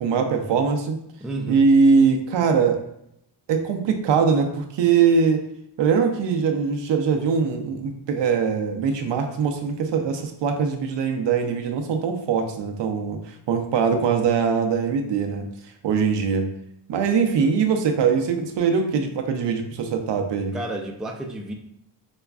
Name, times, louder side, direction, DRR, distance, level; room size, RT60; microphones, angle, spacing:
voice 1, 0.0-1.0 1.4-2.8 3.5-5.4 5.8-15.5 15.8-16.5 16.9-20.6, right 5 dB, 80° right, 4 dB, 0.6 m, -22 dB
voice 2, 1.2-1.6 20.5-21.5, right 2 dB, ahead, 2 dB, 0.3 m, -31 dB
4.9 x 2.3 x 2.3 m, 0.76 s
cardioid pair, 85°, 43 cm